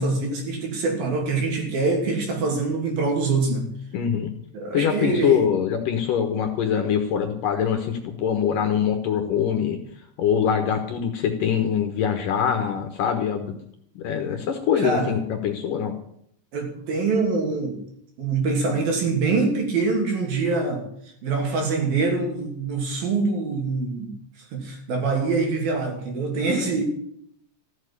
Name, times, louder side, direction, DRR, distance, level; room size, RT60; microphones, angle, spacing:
voice 1, 0.0-3.7 4.5-5.4 14.8-15.2 16.5-17.8 18.2-20.9 21.2-24.1 24.5-26.8, right 3 dB, 60° right, 2 dB, 4.6 m, -24 dB
voice 2, 3.9-4.3 4.7-9.8 10.2-13.6 14.0-15.9, left 8 dB, 65° left, 6 dB, 2.5 m, -23 dB
14.5 x 7.4 x 10.0 m, 0.69 s
omnidirectional pair, 4.9 m